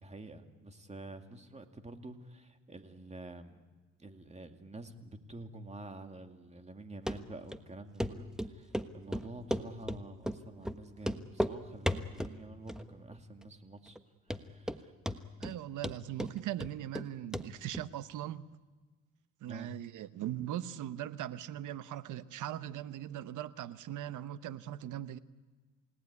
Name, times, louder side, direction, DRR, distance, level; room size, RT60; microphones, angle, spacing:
voice 1, 0.0-3.6 4.0-14.0 14.3-15.3 19.5-19.7, right 2 dB, 20° right, 2.5 m, -48 dB
Run, 7.1-7.2 7.5-7.6 8.0-8.1 8.4-8.9 9.1-10.0 10.3-10.4 10.7-10.8 11.0-11.6 11.9-12.4 12.7-13.1 13.4-13.5 14.0-14.1 14.3-14.8 15.1-15.6 15.8-17.1 17.3-17.5 17.7-17.8, equal, ahead, 1.3 m, -34 dB
voice 2, 15.4-18.5 19.4-25.2, right 12 dB, 80° right, 1.0 m, -40 dB
28.5 x 18.0 x 9.7 m
cardioid pair, 90°, 30 cm